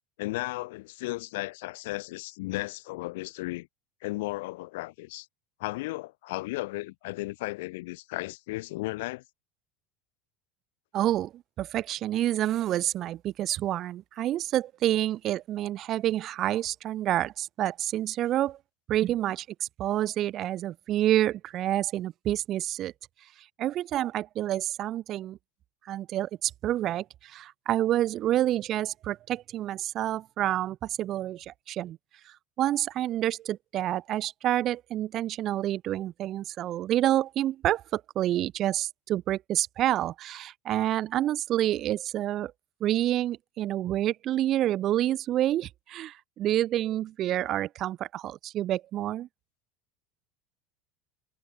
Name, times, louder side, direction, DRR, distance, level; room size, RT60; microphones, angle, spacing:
voice 1, 0.2-3.7 4.0-5.3 5.6-9.2, left 21 dB, 80° left, 0.8 m, -35 dB
voice 2, 10.9-18.6 18.9-22.9 23.6-25.4 25.9-32.0 32.3-42.5 42.8-49.3, right 13 dB, 45° right, 0.6 m, -28 dB
supercardioid pair, 120°, 0 cm